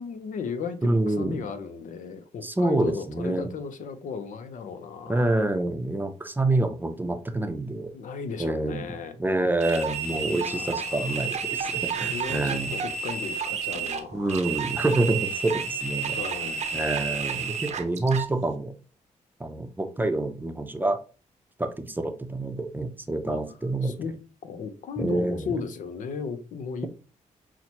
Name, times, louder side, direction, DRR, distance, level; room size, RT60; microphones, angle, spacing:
voice 1, 0.0-5.5 7.9-9.2 10.1-11.2 11.8-14.3 16.1-16.6 23.3-23.4 23.8-24.1 24.4-26.9, left 5 dB, 70° left, 0.6 m, -35 dB
voice 2, 0.8-1.4 2.4-3.5 5.1-7.9 8.4-12.7 14.1-16.2 16.7-18.7 19.4-21.0 21.6-23.9 25.0-25.5, right 2 dB, 15° right, 0.6 m, -27 dB
sound 1, 9.6-18.3, right 6 dB, 55° right, 0.7 m, -31 dB
5.7 x 2.1 x 2.9 m
cardioid pair, 80°, 13 cm